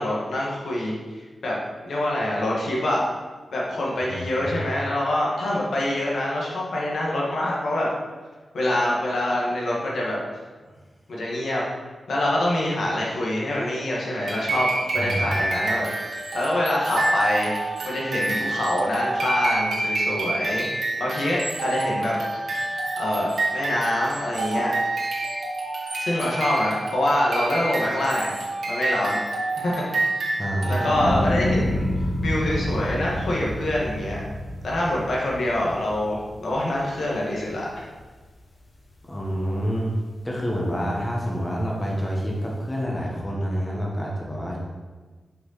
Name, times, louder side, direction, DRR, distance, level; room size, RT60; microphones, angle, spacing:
voice 1, 0.0-1.6 1.8-3.0 3.5-7.9 8.5-10.2 11.1-11.7 12.1-15.9 16.3-20.7 21.0-22.2 23.0-24.7 25.9-28.3 28.7-29.2 29.6-30.0 30.3-30.4 30.7-31.9 32.2-34.2 34.6-37.8, left 1 dB, 75° left, -4 dB, 1.6 m, -25 dB
voice 2, 4.1-4.6 10.6-10.7 15.0-15.3 30.4-31.1 39.0-39.9 40.2-44.6, equal, 15° left, -3 dB, 1.2 m, -28 dB
sound 1, 14.3-31.3, right 2 dB, 90° right, 1.5 m, -28 dB
sound 2, 30.9-37.2 37.7-38.3, left 1 dB, 40° left, 1.0 m, -28 dB
5.7 x 5.3 x 4.0 m, 1.3 s
wide cardioid pair, 125°, 0 cm